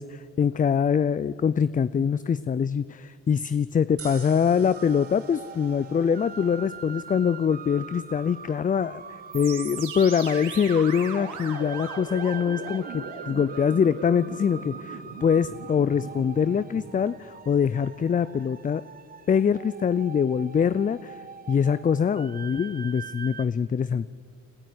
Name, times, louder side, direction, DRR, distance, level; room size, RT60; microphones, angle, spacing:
voice 1, 0.0-9.0 9.3-18.8 19.3-21.2 21.5-24.1, left 7 dB, 25° left, 16 dB, 0.5 m, -24 dB
sound 1, 4.0-16.3, right 7 dB, 50° right, 1.5 m, -52 dB
sound 2, 4.7-23.5, right 6 dB, 30° right, 0.7 m, -43 dB
sound 3, 9.3-17.0, right 5 dB, 85° right, 2.9 m, -39 dB
29.5 x 12.5 x 9.5 m, 2.2 s
cardioid pair, 90°, 30 cm